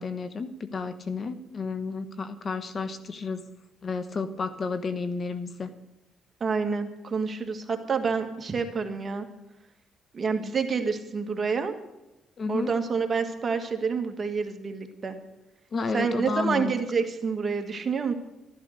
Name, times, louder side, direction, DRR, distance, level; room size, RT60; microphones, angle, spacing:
voice 1, 0.0-3.4 3.8-5.7 12.4-12.7 15.7-16.7, left 4 dB, 45° left, 11 dB, 1.1 m, -31 dB
voice 2, 6.4-9.3 10.1-11.7 12.5-15.2 15.9-18.1, right 5 dB, 40° right, 6 dB, 1.8 m, -28 dB
13.0 x 11.5 x 6.6 m, 0.96 s
cardioid pair, 90°, 0 cm